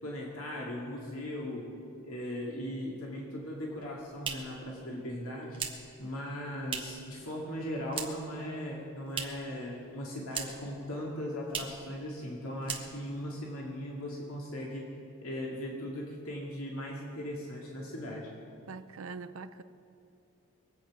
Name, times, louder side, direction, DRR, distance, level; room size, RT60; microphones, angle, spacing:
voice 1, 0.0-1.7 2.0-5.6 6.0-14.9 15.2-18.3, equal, 85° left, 2.2 m, -38 dB
sound 1, 3.7-7.1 7.4-8.4 8.6-9.6 9.8-10.8 11.0-11.1 11.4-11.9 12.2-12.3 12.6-13.2, right 6 dB, 25° right, 1.4 m, -39 dB
voice 2, 18.7-19.6, right 4 dB, 70° right, 0.5 m, -43 dB
22.5 x 8.6 x 6.0 m
head